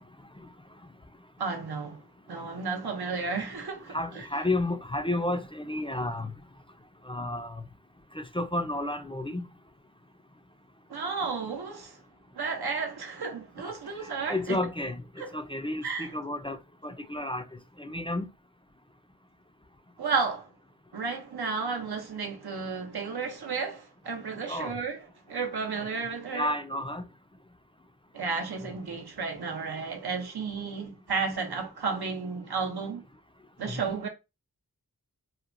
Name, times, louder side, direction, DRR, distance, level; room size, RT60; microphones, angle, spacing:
voice 1, 1.4-2.0 2.3-4.2 10.9-12.0 12.3-14.6 15.2-15.3 15.8-16.1 20.0-20.5 20.9-25.0 25.3-26.5 28.1-33.0 33.6-34.1, right 5 dB, 85° right, 0.7 m, -32 dB
voice 2, 3.9-6.3 7.1-7.6 8.2-9.4 14.3-15.0 15.3-16.6 16.8-17.4 17.8-18.3 24.5-24.7 26.3-27.0 28.6-28.7 33.7-33.9, left 1 dB, 15° left, 0.3 m, -31 dB
2.9 x 2.2 x 2.4 m
wide cardioid pair, 45°, 37 cm